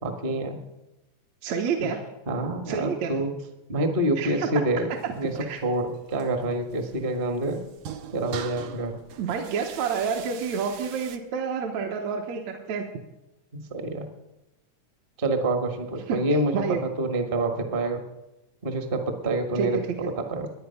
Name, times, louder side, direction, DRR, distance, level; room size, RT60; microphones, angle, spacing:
voice 1, 0.0-0.6 1.8-1.9 2.3-3.3 3.7-4.9 5.2-5.3 5.6-7.6 8.1-9.0 13.5-14.1 15.2-18.0 18.6-20.5, right 1 dB, 30° right, 5 dB, 0.9 m, -27 dB
voice 2, 1.4-2.0 2.7-3.1 4.2-4.5 5.0-5.1 5.4-5.6 9.2-12.9 16.1-16.2 16.5-16.8 19.6-19.8, right 6 dB, 70° right, 2 dB, 2.3 m, -28 dB
sound 1, 4.9-11.2, right 8 dB, 85° right, 2.4 m, -42 dB
23.0 x 9.4 x 5.7 m, 0.98 s
omnidirectional pair, 3.5 m